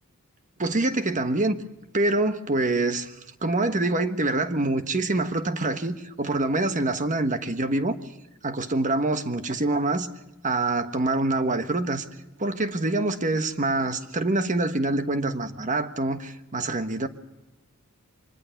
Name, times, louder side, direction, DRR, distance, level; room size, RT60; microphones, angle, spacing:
voice 1, 0.6-1.6 1.9-3.1 3.4-8.0 8.4-10.1 10.4-12.0 12.4-17.1, right 2 dB, 35° right, 1.3 m, -25 dB
24.5 x 20.5 x 5.9 m
head